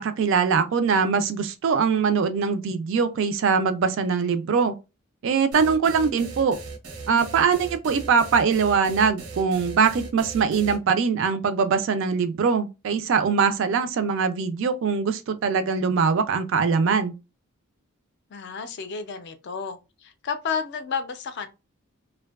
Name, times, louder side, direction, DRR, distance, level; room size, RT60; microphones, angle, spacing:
voice 1, 0.0-4.7 5.2-6.6 7.1-17.1, right 5 dB, 55° right, 0.3 m, -22 dB
sound 1, 5.5-10.8, right 4 dB, 85° right, 0.6 m, -38 dB
voice 2, 18.3-21.5, left 6 dB, 50° left, 0.4 m, -31 dB
2.5 x 2.2 x 2.2 m
head